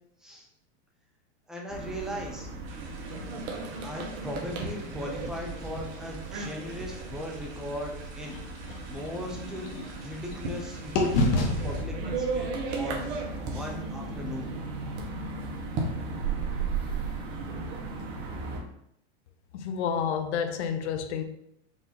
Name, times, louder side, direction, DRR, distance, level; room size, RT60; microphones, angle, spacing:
voice 1, 1.5-2.5 3.8-8.4 8.9-9.7 10.0-13.2 13.5-14.5, left 1 dB, ahead, 0.3 m, -38 dB
sound 1, 1.7-18.6, right 4 dB, 45° right, 1.0 m, -35 dB
sound 2, 2.6-11.8, right 3 dB, 65° right, 1.5 m, -49 dB
sound 3, 8.3-10.6 11.0-14.9, left 2 dB, 50° left, 1.1 m, -31 dB
voice 2, 19.5-21.2, left 7 dB, 70° left, 0.7 m, -29 dB
4.9 x 2.6 x 3.9 m
supercardioid pair, 140°, 35 cm